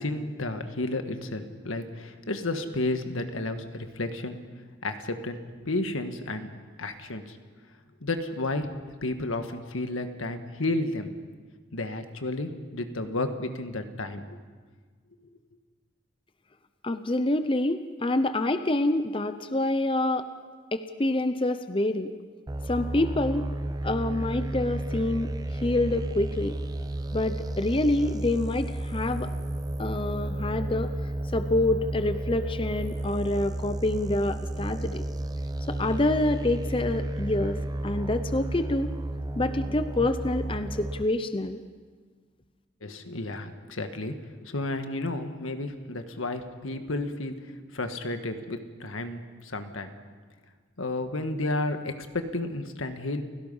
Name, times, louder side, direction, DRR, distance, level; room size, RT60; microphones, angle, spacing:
voice 1, 0.0-4.4 4.8-6.5 6.8-7.4 8.0-8.7 9.0-11.1 11.7-14.4 42.8-49.9 50.8-53.2, left 2 dB, 90° left, 7 dB, 1.6 m, -32 dB
voice 2, 16.8-20.3 20.7-22.1 22.7-23.5 23.8-26.6 27.1-29.3 29.8-30.9 31.3-35.1 35.7-38.9 39.4-41.6, left 2 dB, 25° left, 10 dB, 0.7 m, -27 dB
sound 1, 22.5-41.0, right 1 dB, 20° right, 0.6 m, -32 dB
29.5 x 16.5 x 5.6 m, 1.5 s
head